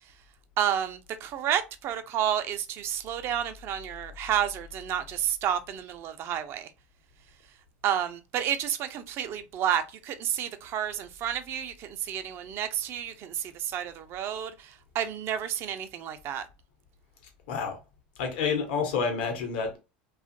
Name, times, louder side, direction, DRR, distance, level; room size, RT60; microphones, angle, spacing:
voice 1, 0.6-6.7 7.8-16.5, right 10 dB, 50° right, 0.5 m, -30 dB
voice 2, 17.5-17.8 18.2-19.8, left 5 dB, 75° left, 0.9 m, -29 dB
2.7 x 2.4 x 2.6 m
hypercardioid pair, 95°, 5 cm